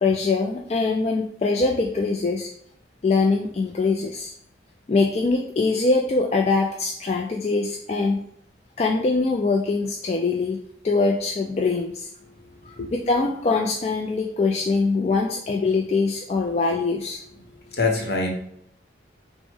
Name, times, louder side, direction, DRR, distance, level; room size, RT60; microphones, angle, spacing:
voice 1, 0.0-2.5 3.0-4.3 4.9-8.2 8.8-12.1 12.7-17.2, left 3 dB, 35° left, 0 dB, 0.3 m, -23 dB
voice 2, 12.2-12.9 17.6-18.4, left 3 dB, 60° left, 2 dB, 0.9 m, -27 dB
6.0 x 2.1 x 3.5 m, 0.70 s
head